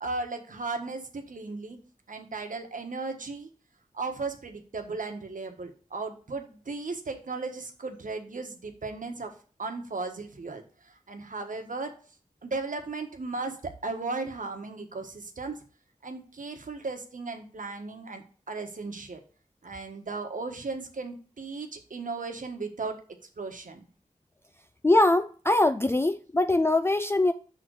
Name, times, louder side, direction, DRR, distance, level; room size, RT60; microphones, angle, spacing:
voice 1, 0.0-1.8 2.1-3.5 3.9-9.3 9.6-10.6 11.1-11.9 12.4-15.6 16.0-19.2 19.6-23.0 23.4-23.8, right 3 dB, 75° right, 1.2 m, -36 dB
voice 2, 24.8-27.3, left 2 dB, 20° left, 0.3 m, -22 dB
5.8 x 4.0 x 6.2 m
wide cardioid pair, 60°, 14 cm